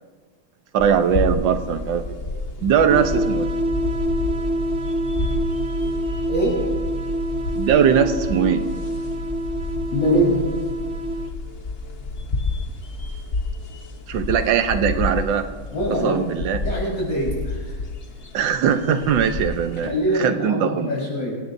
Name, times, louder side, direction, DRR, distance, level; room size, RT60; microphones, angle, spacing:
voice 1, 0.7-2.1 2.6-3.5 7.5-8.6 14.1-15.5 16.0-16.6 18.3-20.9, right 8 dB, 70° right, 8 dB, 1.6 m, -20 dB
sound 1, 0.8-19.9, left 3 dB, 40° left, 1.0 m, -31 dB
sound 2, 2.9-11.3, equal, 55° right, 0.7 m, -26 dB
voice 2, 6.3-6.6 9.9-10.4 15.7-16.3 16.6-17.7 19.8-21.4, equal, 60° left, -5 dB, 5.6 m, -23 dB
24.5 x 17.0 x 2.7 m, 1.4 s
omnidirectional pair, 2.2 m